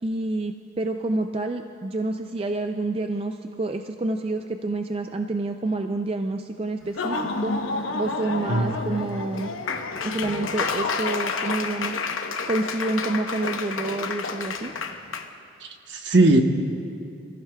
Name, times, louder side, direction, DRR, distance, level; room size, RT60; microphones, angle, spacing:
voice 1, 0.0-9.5 10.0-14.7, right 2 dB, 30° right, 6 dB, 0.3 m, -28 dB
Laughter / Applause, 6.8-15.3, left 4 dB, 85° left, 0.9 m, -29 dB
voice 2, 15.6-16.4, right 2 dB, 60° right, 4 dB, 1.0 m, -19 dB
27.0 x 14.5 x 2.3 m, 2.5 s
head